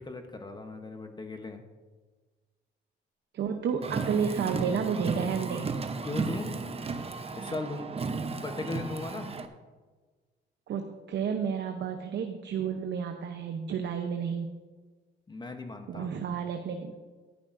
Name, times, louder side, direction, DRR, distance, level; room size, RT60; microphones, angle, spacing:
voice 1, 0.0-1.6 6.0-6.6 7.3-7.9 8.3-9.3 15.3-16.1, left 3 dB, 20° left, 6 dB, 0.9 m, -37 dB
voice 2, 3.3-5.7 10.7-14.5 15.9-17.0, right 7 dB, 65° right, 5 dB, 0.8 m, -31 dB
Car, 3.8-9.5, right 4 dB, 30° right, 0.8 m, -34 dB
13.0 x 11.5 x 2.6 m, 1.4 s
cardioid pair, 90°, 20 cm